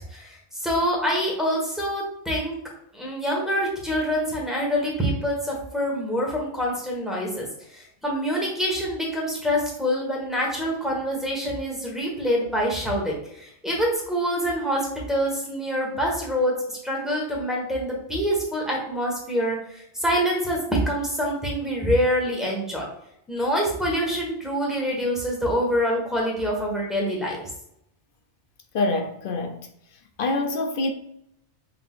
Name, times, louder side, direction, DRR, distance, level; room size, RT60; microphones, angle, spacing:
voice 1, 0.1-2.6 2.9-7.5 7.7-22.9 23.3-27.4, equal, ahead, 1.3 m, -26 dB
voice 2, 28.7-29.7 30.2-30.9, left 2 dB, 60° left, 0.6 m, -25 dB
5.8 x 3.4 x 2.5 m
omnidirectional pair, 1.2 m